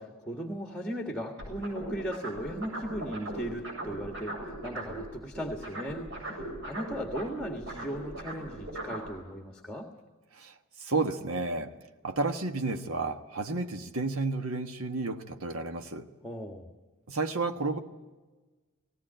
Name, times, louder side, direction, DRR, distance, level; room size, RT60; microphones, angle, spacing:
voice 1, 0.0-9.9 16.2-16.7, equal, 5° left, 3 dB, 1.6 m, -37 dB
sound 1, 1.4-5.1 5.3-9.1, right 1 dB, 55° right, 7.9 m, -38 dB
voice 2, 10.8-11.7 12.0-16.1 17.1-17.8, right 3 dB, 70° right, 6 dB, 1.3 m, -31 dB
18.5 x 17.5 x 8.8 m, 1.3 s
head